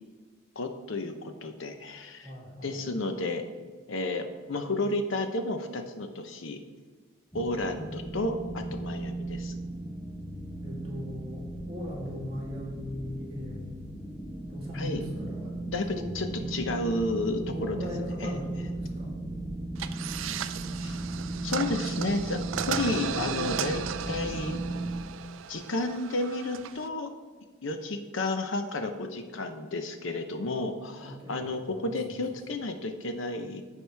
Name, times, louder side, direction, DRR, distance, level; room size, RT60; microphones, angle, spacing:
voice 1, 0.6-2.3 2.6-3.4 3.9-6.6 7.3-9.6 14.7-15.0 15.7-15.9 16.1-17.8 18.2-18.4 20.8-21.0 21.4-24.6 25.5-27.1 27.6-33.6, left 2 dB, 70° left, 6 dB, 0.8 m, -32 dB
voice 2, 2.2-2.8 10.6-13.6 14.5-15.5 15.9-16.6 17.5-19.1 22.5-23.2 31.0-32.0, equal, 30° right, -5 dB, 2.8 m, -39 dB
sound 1, 7.3-25.0, right 2 dB, 5° left, 0.8 m, -36 dB
sound 2, 19.8-26.9, right 9 dB, 75° right, 0.4 m, -36 dB
14.5 x 4.9 x 3.4 m, 1.5 s
head